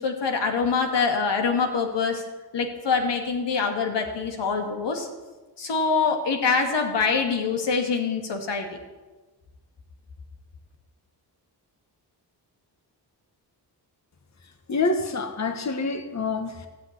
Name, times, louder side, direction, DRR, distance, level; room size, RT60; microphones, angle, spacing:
voice 1, 0.0-2.2 2.5-5.1 5.6-8.7, left 5 dB, 90° left, 4 dB, 2.2 m, -24 dB
voice 2, 14.7-16.7, left 3 dB, 40° left, 7 dB, 1.3 m, -27 dB
16.0 x 6.0 x 9.7 m, 1.2 s
cardioid pair, 90°, 41 cm